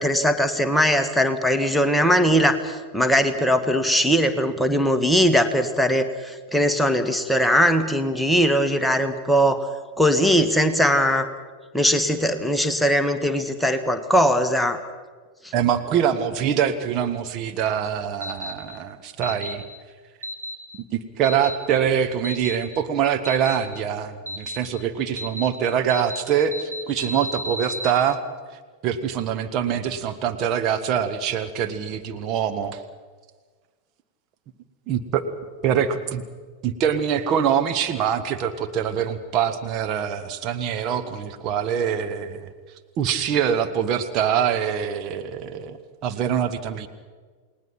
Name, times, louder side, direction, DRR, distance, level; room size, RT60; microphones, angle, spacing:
voice 1, 0.0-9.7 10.0-11.3 11.7-14.8, equal, ahead, 6 dB, 1.6 m, -20 dB
voice 2, 15.5-19.6 20.9-28.2 28.8-32.8 34.9-35.3 35.6-36.2 36.6-42.5 43.0-45.8 46.0-46.9, right 8 dB, 35° right, 7 dB, 1.5 m, -24 dB
The Incredibles - Time Bomb Ticker, 18.2-18.5 19.2-19.5 20.2-20.5 21.2-21.5 22.2-22.6 23.3-23.6 24.3-24.6 25.2-25.5 25.9-26.2 26.5-27.9, left 1 dB, 85° right, 3.2 m, -32 dB
29.5 x 19.5 x 5.9 m, 1.5 s
figure-of-eight pair, 90°, 0 cm